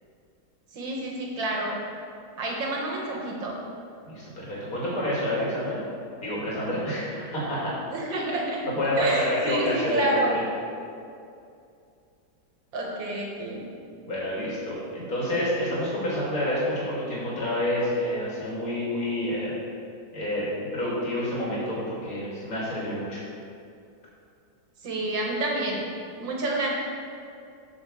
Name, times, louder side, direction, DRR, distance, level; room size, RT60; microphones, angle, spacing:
voice 1, 0.7-1.8 2.4-3.6 7.9-8.7 9.0-10.4 12.7-13.7 24.8-25.9 26.2-26.7, right 1 dB, 80° right, -1 dB, 2.2 m, -28 dB
voice 2, 4.0-5.8 6.2-7.7 8.6-10.3 14.0-19.5 20.1-20.5 20.7-23.2, left 1 dB, 45° left, -7 dB, 3.1 m, -28 dB
6.8 x 6.5 x 7.1 m, 2.5 s
omnidirectional pair, 2.0 m